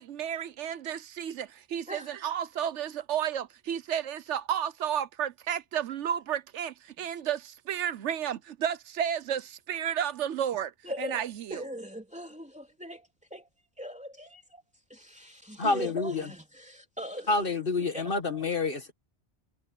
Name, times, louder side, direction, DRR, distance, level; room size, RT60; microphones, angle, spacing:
voice 1, 0.0-10.7 11.0-11.6, right 9 dB, 80° right, 1.1 m, -32 dB
voice 2, 10.8-11.2 11.5-13.5 13.8-14.6 14.9-17.4 17.8-18.5, equal, 5° right, 3.2 m, -41 dB
voice 3, 15.6-16.3 17.3-18.9, left 3 dB, 50° left, 1.7 m, -28 dB
omnidirectional pair, 1.2 m